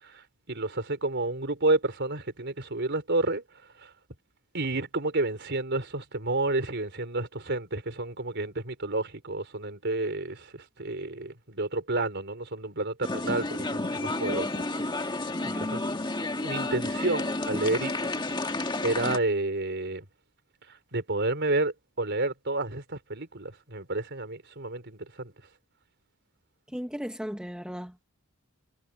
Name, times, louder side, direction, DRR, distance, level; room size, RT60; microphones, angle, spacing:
voice 1, 0.0-3.4 3.8-3.9 4.5-15.8 16.4-17.9 18.8-20.0 20.7-25.3, right 2 dB, 55° right, 4.2 m, -30 dB
sound 1, 13.0-19.2, left 2 dB, 20° left, 1.7 m, -31 dB
voice 2, 15.4-15.8 26.7-28.0, equal, 5° right, 1.4 m, -37 dB
head